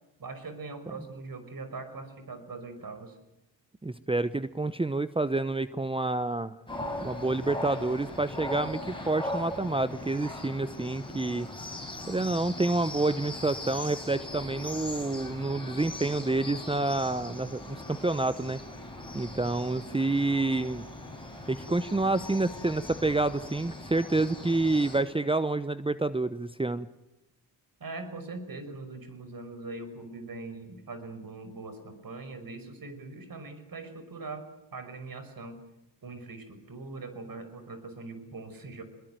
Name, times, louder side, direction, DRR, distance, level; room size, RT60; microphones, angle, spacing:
voice 1, 0.2-3.2 27.8-34.5 34.7-35.6 36.0-38.8, right 3 dB, 45° right, 10 dB, 5.6 m, -41 dB
voice 2, 3.8-6.6 7.0-11.5 12.1-18.6 19.1-20.8 21.5-26.9, right 2 dB, 10° right, 14 dB, 0.9 m, -28 dB
sound 1, 6.7-25.0, left 1 dB, 10° left, 7.5 m, -40 dB
22.5 x 21.0 x 9.2 m, 0.92 s
supercardioid pair, 55°, 48 cm